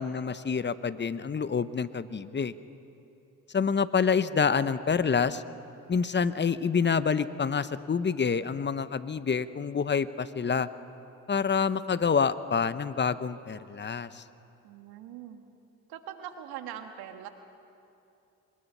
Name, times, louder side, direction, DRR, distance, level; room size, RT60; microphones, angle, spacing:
voice 1, 0.0-2.5 3.5-5.4 5.9-10.7 11.3-14.2, left 6 dB, 30° left, 14 dB, 0.9 m, -27 dB
voice 2, 14.6-15.4 15.9-17.3, right 10 dB, 80° right, 7 dB, 1.6 m, -42 dB
23.0 x 20.5 x 5.6 m, 2.8 s
hypercardioid pair, 55°, 37 cm